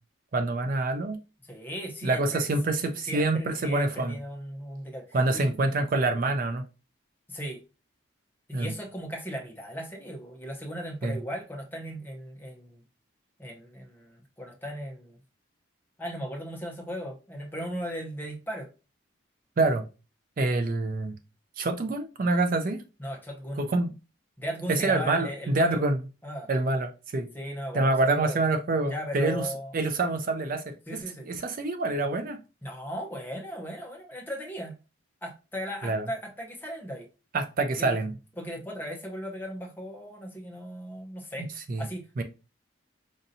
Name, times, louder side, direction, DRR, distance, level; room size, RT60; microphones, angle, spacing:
voice 1, 0.3-1.2 2.0-4.1 5.1-6.6 8.5-8.7 11.0-11.2 19.6-19.8 20.4-21.2 21.6-22.8 23.6-23.9 24.7-26.0 26.5-27.3 27.7-29.4 29.7-30.6 30.9-32.4 35.8-36.1 37.3-38.1 41.7-41.9 42.2-42.3, right 2 dB, 45° right, 0.4 m, -26 dB
voice 2, 1.4-2.5 3.0-5.5 7.3-7.6 8.5-12.8 13.4-15.2 16.0-18.7 23.0-23.7 24.4-25.8 26.2-26.5 27.3-28.4 28.8-29.8 30.9-31.3 32.6-34.8 35.2-37.1 37.7-38.0 38.4-41.5 41.8-42.2, equal, 10° left, 0.6 m, -37 dB
5.0 x 2.7 x 2.6 m
head